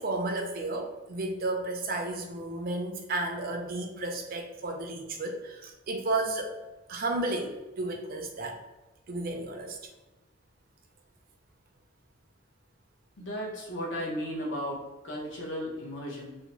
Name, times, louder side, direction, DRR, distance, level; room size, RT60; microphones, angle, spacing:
voice 1, 0.0-6.6 6.9-8.6 9.1-9.8, right 2 dB, 45° right, 3 dB, 0.4 m, -33 dB
voice 2, 13.2-14.8 15.0-16.4, equal, 65° left, -2 dB, 0.8 m, -35 dB
2.7 x 2.2 x 2.9 m, 1.1 s
head